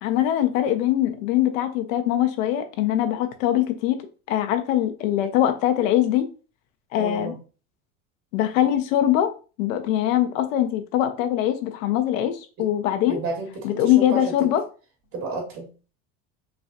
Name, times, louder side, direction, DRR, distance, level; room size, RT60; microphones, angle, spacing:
voice 1, 0.0-4.0 4.3-6.3 6.9-7.3 8.3-9.3 9.6-13.2 13.6-14.6, left 12 dB, 85° left, 0.8 m, -22 dB
voice 2, 7.0-7.4 12.6-12.7 13.1-14.5 15.1-15.7, right 2 dB, 60° right, 2.3 m, -31 dB
5.5 x 2.3 x 2.9 m
supercardioid pair, 90°, 39 cm